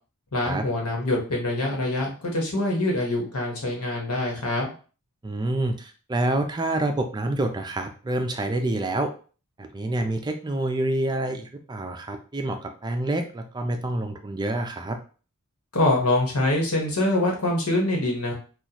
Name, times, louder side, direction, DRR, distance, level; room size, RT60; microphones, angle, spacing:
voice 1, 0.3-4.7 15.7-18.3, left 1 dB, 90° left, 0 dB, 1.3 m, -24 dB
voice 2, 5.2-9.1 9.6-15.0, right 1 dB, 20° right, 5 dB, 0.4 m, -27 dB
4.0 x 2.4 x 2.9 m, 0.38 s
head